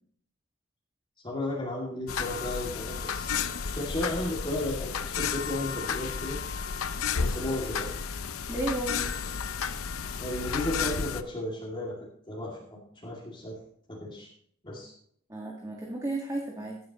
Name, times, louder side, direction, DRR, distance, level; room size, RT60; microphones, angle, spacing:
voice 1, 1.2-6.4 7.2-8.0 10.2-11.9 12.3-13.6 13.9-14.3 14.6-14.9, left 1 dB, 25° left, -5 dB, 2.6 m, -34 dB
sound 1, 2.1-11.2, left 6 dB, 85° left, 0.7 m, -32 dB
voice 2, 8.5-9.0 15.3-16.8, right 2 dB, 15° right, -2 dB, 1.8 m, -33 dB
15.5 x 9.3 x 3.1 m, 0.64 s
head